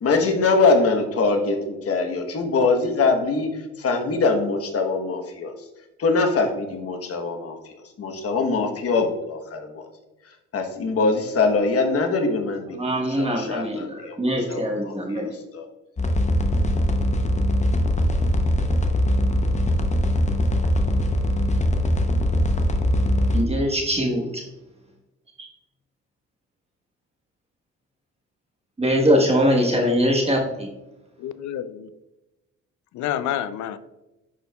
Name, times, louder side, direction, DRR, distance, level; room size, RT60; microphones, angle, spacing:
voice 1, 0.0-5.5 6.0-9.9 10.5-14.2 14.5-15.6, left 3 dB, 50° left, 4 dB, 1.1 m, -23 dB
voice 2, 12.7-15.3 23.3-24.4 25.4-25.5 28.8-30.7, equal, 20° right, 0 dB, 1.3 m, -22 dB
sound 1, 16.0-23.4, left 1 dB, 25° left, 0.7 m, -21 dB
voice 3, 31.2-31.9 32.9-33.8, left 11 dB, 70° left, 14 dB, 0.5 m, -28 dB
11.0 x 4.4 x 2.3 m, 1.0 s
cardioid pair, 90°, 30 cm